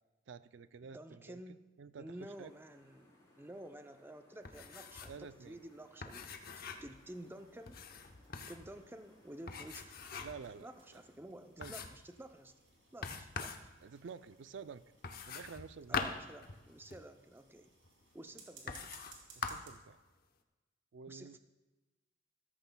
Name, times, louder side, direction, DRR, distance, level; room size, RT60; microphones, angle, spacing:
voice 1, 0.3-1.4 1.8-2.5 5.1-5.6 10.2-10.7 11.6-11.7 13.8-14.8 15.3-16.1 19.3-20.0 20.9-21.4, right 5 dB, 65° right, 14 dB, 0.4 m, -50 dB
voice 2, 0.8-1.6 2.0-6.3 6.6-7.8 8.5-9.9 10.6-12.5 12.9-13.7 15.9-17.7 18.1-18.9 21.1-21.4, right 1 dB, 10° right, 7 dB, 0.5 m, -51 dB
sound 1, 2.2-11.1, left 1 dB, 15° left, 3.6 m, -67 dB
sound 2, 4.4-5.2 5.5-5.6 6.0-7.0 7.7-8.7 9.5-10.5 10.9-11.0 11.6-12.1 13.0-13.7 15.0-17.0 17.8-17.9 18.7-19.2 19.4-19.8, left 5 dB, 50° left, 0.8 m, -43 dB
sound 3, 6.8-19.7, right 4 dB, 80° right, 2.4 m, -64 dB
14.5 x 13.5 x 2.2 m, 1.2 s
head